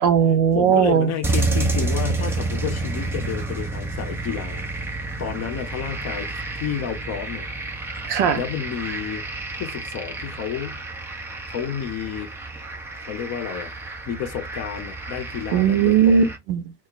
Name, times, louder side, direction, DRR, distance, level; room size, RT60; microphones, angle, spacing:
voice 1, 0.0-1.1 8.0-8.4 15.5-16.7, right 7 dB, 60° right, 0.7 m, -18 dB
voice 2, 0.5-7.5 8.3-9.2 9.6-10.8 11.5-12.3 13.0-13.7 14.1-16.3, left 8 dB, 35° left, 0.6 m, -30 dB
sound 1, 1.2-16.4, right 2 dB, 5° right, 0.4 m, -30 dB
2.2 x 2.1 x 3.7 m
hypercardioid pair, 80°, 49 cm